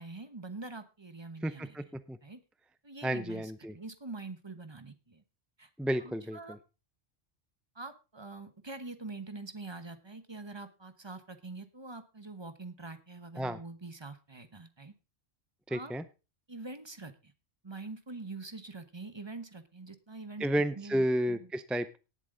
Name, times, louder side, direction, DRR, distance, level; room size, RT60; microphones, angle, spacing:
voice 1, 0.0-1.8 2.2-2.4 2.8-5.2 5.6-5.7 6.0-6.6 7.7-14.9 15.7-15.9 16.5-17.3 17.6-20.5 20.8-21.5, right 3 dB, 25° right, 11 dB, 1.1 m, -45 dB
voice 2, 1.4-2.2 3.0-3.7 5.8-6.6 13.4-13.6 15.7-16.0 20.4-22.0, right 1 dB, ahead, 12 dB, 0.3 m, -32 dB
18.0 x 7.6 x 3.8 m, 0.30 s
omnidirectional pair, 1.1 m